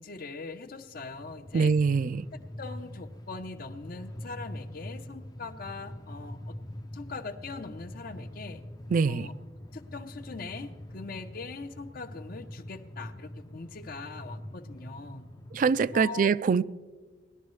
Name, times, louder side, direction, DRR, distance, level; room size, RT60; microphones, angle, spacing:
voice 1, 0.0-1.7 2.3-6.6 6.9-8.6 9.1-9.3 9.7-15.3 15.9-16.3, left 4 dB, 55° left, 0.7 m, -41 dB
Train, 0.8-16.0, left 1 dB, 20° left, 0.5 m, -44 dB
voice 2, 1.5-2.3 8.9-9.3 15.5-16.6, right 5 dB, 45° right, 0.3 m, -24 dB
18.5 x 11.5 x 3.2 m
head